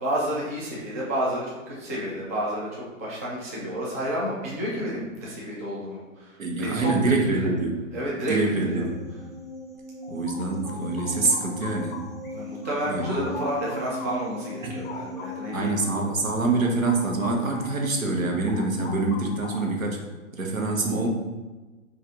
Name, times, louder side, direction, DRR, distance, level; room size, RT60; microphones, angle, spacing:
voice 1, 0.0-7.5 7.9-8.3 8.6-8.9 12.3-15.8, equal, 15° right, -6 dB, 0.3 m, -30 dB
voice 2, 6.4-7.8 8.3-9.1 10.1-12.0 12.9-13.3 14.6-14.7 15.5-20.0 20.3-21.1, right 3 dB, 90° right, 1 dB, 1.0 m, -25 dB
sound 1, 8.6-15.4, equal, 30° right, 1.4 m, -39 dB
sound 2, 9.8-12.3 12.6-17.9 18.2-19.9, left 4 dB, 45° left, 0.7 m, -41 dB
4.8 x 2.6 x 3.6 m, 1.2 s
hypercardioid pair, 130°, 39 cm